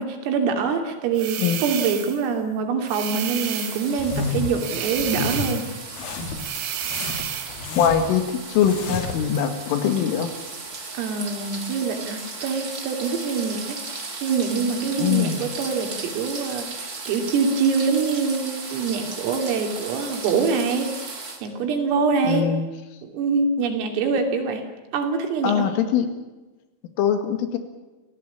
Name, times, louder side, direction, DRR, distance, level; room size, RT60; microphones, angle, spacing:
voice 1, 0.0-5.7 11.0-13.8 14.2-21.1 21.4-22.5 23.0-24.7 24.9-25.7, right 5 dB, 85° right, 5 dB, 5.6 m, -24 dB
sound 1, 1.2-2.3 2.9-4.0 4.6-5.8 6.4-7.6, right 10 dB, 70° right, 3.9 m, -31 dB
sound 2, 3.4-21.4, right 3 dB, 30° right, 1.9 m, -36 dB
sound 3, 4.0-4.6 4.9-5.5 5.9-6.5 6.8-8.2 8.6-9.2, left 3 dB, 55° left, 3.8 m, -30 dB
voice 2, 7.8-10.3 15.0-15.4 22.2-22.7 25.4-26.1 27.0-27.6, left 8 dB, 80° left, 8 dB, 4.5 m, -22 dB
28.0 x 17.0 x 8.6 m, 1.2 s
omnidirectional pair, 5.8 m